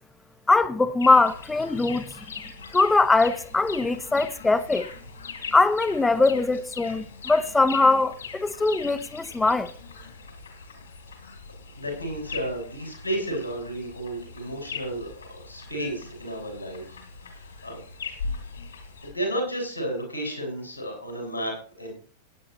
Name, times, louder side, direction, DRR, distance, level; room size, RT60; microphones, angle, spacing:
voice 1, 0.5-2.0 2.7-4.9 5.5-9.7, left 3 dB, 10° left, 0.9 m, -21 dB
sound 1, 1.0-19.1, left 5 dB, 70° left, 3.8 m, -40 dB
voice 2, 11.7-17.8 18.2-18.3 19.0-21.9, right 1 dB, 85° left, 6.5 m, -32 dB
18.0 x 10.0 x 3.1 m
figure-of-eight pair, 90°, 0 cm